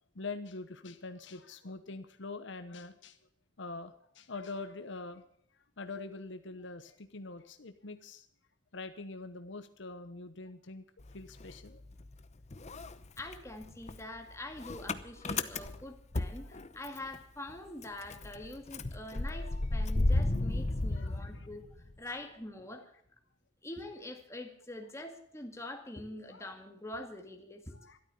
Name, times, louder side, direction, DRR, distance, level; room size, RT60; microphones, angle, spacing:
voice 1, 0.1-3.2 3.6-5.2 5.8-8.3 8.7-10.8 11.1-11.8 16.4-16.5 21.0-21.5 22.1-22.2 26.2-26.5 27.7-28.0, left 3 dB, 65° left, 9 dB, 1.0 m, -44 dB
Motor vehicle (road) / Engine starting, 11.0-12.2 12.5-17.2 17.5-17.6 17.8-21.9, left 2 dB, 35° left, 0.8 m, -34 dB
voice 2, 13.2-21.7 22.0-22.9 23.6-27.8, left 1 dB, 15° left, 4 dB, 2.1 m, -45 dB
13.0 x 12.5 x 6.9 m, 0.67 s
head